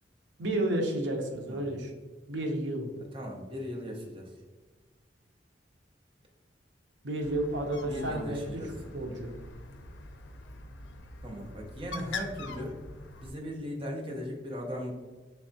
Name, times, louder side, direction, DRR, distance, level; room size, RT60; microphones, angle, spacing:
voice 1, 0.4-1.9 2.3-2.9 7.0-8.6 8.9-9.3, right 1 dB, 80° right, 3 dB, 0.7 m, -31 dB
voice 2, 3.1-4.3 7.8-8.7 11.2-12.8 13.2-14.9, equal, 30° right, 0 dB, 0.7 m, -38 dB
Bird, 7.2-13.3, left 3 dB, 80° left, 0.4 m, -43 dB
3.4 x 3.3 x 2.7 m, 1.3 s
head